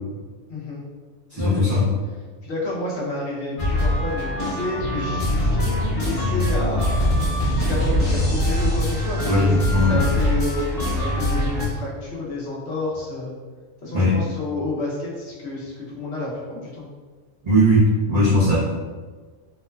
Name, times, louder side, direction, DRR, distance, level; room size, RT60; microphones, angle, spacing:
voice 1, 0.5-0.8 1.3-1.8 2.4-6.9 7.4-9.5 9.8-13.3 13.8-16.8, left 2 dB, 60° left, -6 dB, 1.0 m, -30 dB
voice 2, 1.3-1.9 9.3-10.0 13.9-14.2 17.4-18.6, left 1 dB, 40° right, -12 dB, 0.6 m, -18 dB
sound 1, 3.6-11.7, left 1 dB, 30° left, 1.1 m, -22 dB
3.0 x 2.1 x 2.3 m, 1.4 s
omnidirectional pair, 1.3 m